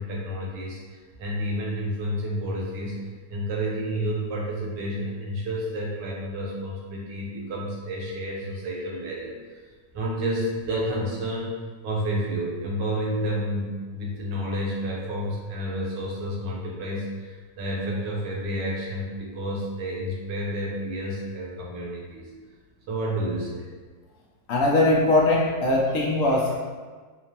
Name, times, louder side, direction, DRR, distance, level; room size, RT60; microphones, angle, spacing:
voice 1, 0.0-3.0 3.3-9.4 9.9-22.3 22.9-23.7, equal, 75° right, -3 dB, 1.5 m, -30 dB
voice 2, 24.5-26.6, left 2 dB, 75° left, -2 dB, 0.7 m, -21 dB
5.9 x 2.1 x 2.8 m, 1.4 s
omnidirectional pair, 2.0 m